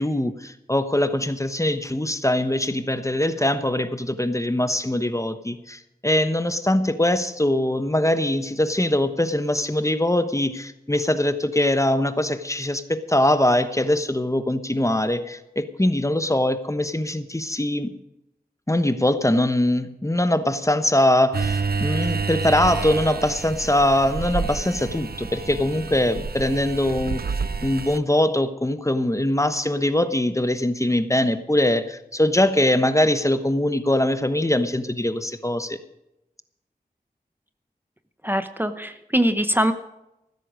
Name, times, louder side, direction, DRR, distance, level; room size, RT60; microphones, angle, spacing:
voice 1, 0.0-17.9 18.7-27.4 27.6-35.8, left 1 dB, 20° left, 11 dB, 1.1 m, -22 dB
sound 1, 21.3-28.0, right 4 dB, 75° right, 0.6 m, -29 dB
voice 2, 38.2-39.7, equal, 10° right, 10 dB, 0.9 m, -22 dB
15.0 x 13.0 x 5.2 m, 0.88 s
wide cardioid pair, 65°, 16 cm